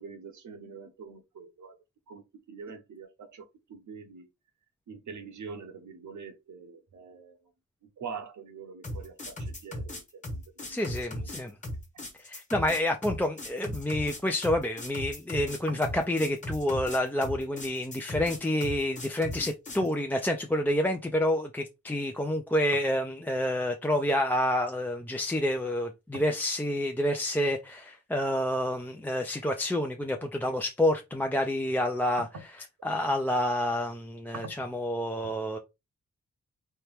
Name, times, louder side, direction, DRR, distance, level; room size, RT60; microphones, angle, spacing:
voice 1, 0.0-1.8 2.1-4.3 4.9-7.4 7.8-10.8 11.1-11.4 11.9-12.0 26.1-26.2 34.3-34.5 35.2-35.3, right 5 dB, 85° right, 1.0 m, -44 dB
sound 1, 8.8-19.9, left 1 dB, 25° left, 1.2 m, -37 dB
voice 2, 10.7-11.5 12.2-32.2 32.8-35.6, left 1 dB, 5° left, 0.4 m, -28 dB
4.4 x 2.9 x 3.4 m
wide cardioid pair, 165°, 29 cm